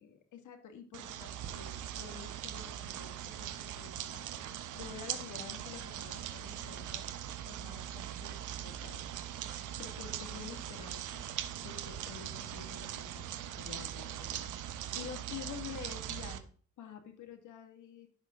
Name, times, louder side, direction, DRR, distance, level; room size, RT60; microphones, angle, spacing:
voice 1, 0.0-4.2 4.7-7.0 7.4-8.3 8.6-9.0 9.4-11.2 11.6-16.4 16.8-18.1, left 8 dB, 80° left, 6 dB, 2.3 m, -49 dB
sound 1, 0.9-16.4, right 11 dB, 85° right, 1.2 m, -41 dB
11.5 x 7.5 x 3.9 m, 0.43 s
cardioid pair, 90°, 30 cm